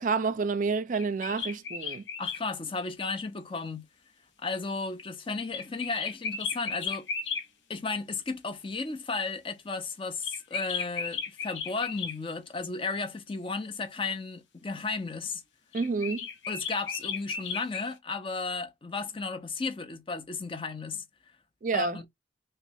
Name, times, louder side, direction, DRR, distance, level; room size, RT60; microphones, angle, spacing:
voice 1, 0.0-2.0 15.7-16.3 21.6-22.0, right 4 dB, 40° right, 0.4 m, -29 dB
sound 1, 0.9-2.4 5.5-7.4 10.2-12.2 15.7-17.9, left 5 dB, 75° left, 0.8 m, -35 dB
voice 2, 2.2-3.9 4.4-7.1 7.7-15.4 16.5-21.0 21.7-22.1, left 4 dB, 25° left, 0.5 m, -34 dB
3.2 x 3.0 x 2.6 m
head